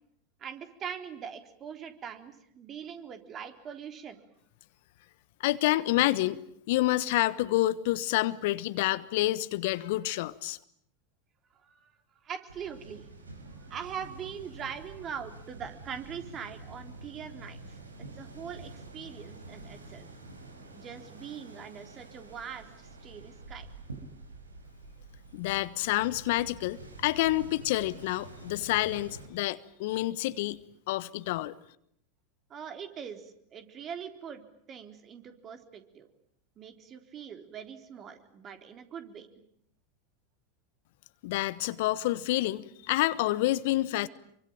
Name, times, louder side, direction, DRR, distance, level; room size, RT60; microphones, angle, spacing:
voice 1, 0.4-4.2 11.5-11.9 12.2-13.1 13.6-20.1 20.8-23.7 32.5-34.4 34.7-36.1 36.6-39.3, right 7 dB, 35° right, 3.8 m, -42 dB
voice 2, 5.4-6.4 6.7-10.6 25.3-30.6 30.9-31.5 41.2-44.1, left 17 dB, 60° left, 1.2 m, -28 dB
sound 1, 12.5-29.3, right 2 dB, 85° right, 4.8 m, -48 dB
27.0 x 24.5 x 9.0 m
hypercardioid pair, 90°, 0 cm